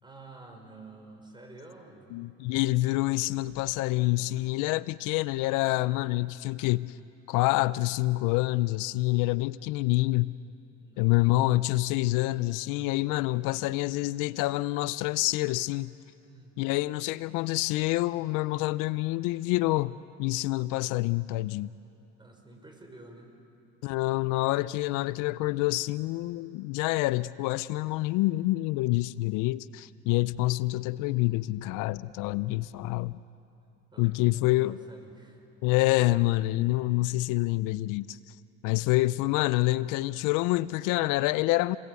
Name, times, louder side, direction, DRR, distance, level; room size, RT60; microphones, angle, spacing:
voice 1, 0.0-2.1 10.8-11.2 16.2-16.6 22.2-23.3 33.9-35.5 38.8-39.3, right 2 dB, 15° right, 6.1 m, -50 dB
voice 2, 2.1-6.9 7.3-10.4 11.0-15.9 16.6-19.9 20.2-21.7 23.8-33.2 34.0-34.8 35.6-38.2 38.6-41.8, left 19 dB, 80° left, 0.6 m, -27 dB
29.0 x 20.5 x 8.3 m
supercardioid pair, 80°, 31 cm